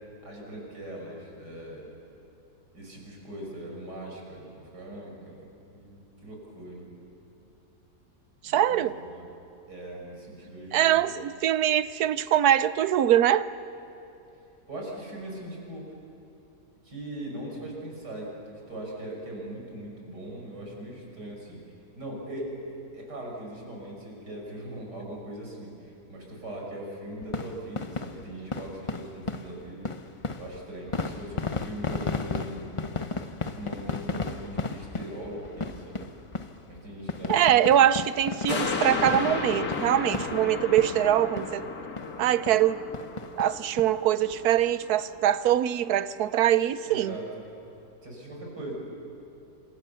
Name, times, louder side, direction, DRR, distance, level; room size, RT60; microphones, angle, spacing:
voice 1, 0.2-1.9 2.7-5.4 5.7-6.9 8.5-9.3 9.7-11.1 14.7-15.9 16.8-21.6 21.9-22.6 22.9-29.9 30.3-32.6 33.5-36.1 36.7-37.9 46.8-47.3 48.0-48.7, right 1 dB, 90° right, -1 dB, 6.4 m, -40 dB
voice 2, 8.4-8.9 10.7-13.5 37.3-41.6 42.2-42.8 43.4-47.2, right 11 dB, 70° right, 15 dB, 1.2 m, -23 dB
sound 1, 27.2-41.1 41.4-41.5 42.0-42.1 42.5-42.6 42.9-43.9 44.3-44.4 44.6-44.7, left 3 dB, 35° left, 0.5 m, -34 dB
sound 2, 38.5-45.1 45.6-45.7, left 4 dB, 60° left, 2.1 m, -33 dB
27.5 x 26.5 x 7.0 m, 2.9 s
omnidirectional pair, 1.8 m